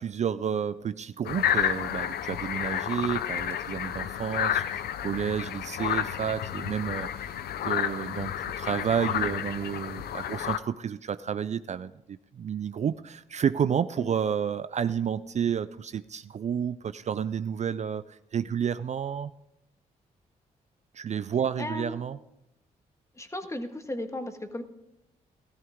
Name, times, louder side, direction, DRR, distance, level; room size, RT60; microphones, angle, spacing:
voice 1, 0.0-7.4 7.6-8.3 8.6-19.3 20.9-22.2, right 8 dB, 45° right, 14 dB, 0.4 m, -30 dB
sound 1, 1.2-10.6, left 10 dB, 75° left, 0.6 m, -31 dB
voice 2, 21.6-22.0 23.2-24.6, left 1 dB, 20° left, 7 dB, 1.6 m, -35 dB
14.0 x 13.5 x 3.6 m, 0.86 s
supercardioid pair, 55°, 16 cm